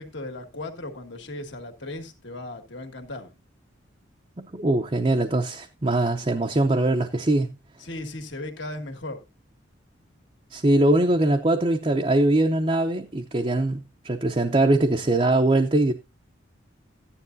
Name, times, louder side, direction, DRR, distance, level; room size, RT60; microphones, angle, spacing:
voice 1, 0.0-3.3 7.8-9.2, left 2 dB, 70° left, 2.0 m, -36 dB
voice 2, 4.4-7.5 10.5-15.9, right 2 dB, 30° right, 0.6 m, -22 dB
14.5 x 9.9 x 2.6 m
head